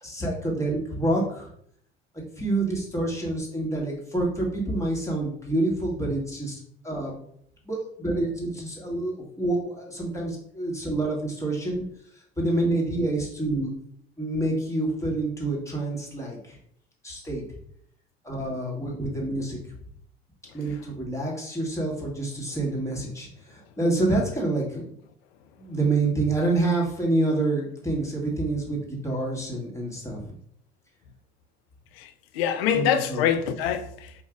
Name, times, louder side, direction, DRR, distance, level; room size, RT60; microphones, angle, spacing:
voice 1, 0.0-1.5 2.4-6.6 6.8-7.1 7.6-11.8 12.4-13.7 14.2-16.6 17.0-17.4 18.2-19.6 20.5-24.9 25.6-30.3 32.7-33.3, right 2 dB, 10° left, 1.6 m, -27 dB
voice 2, 32.0-34.1, left 9 dB, 65° left, 0.6 m, -25 dB
4.6 x 2.6 x 3.6 m
figure-of-eight pair, 60°, 32 cm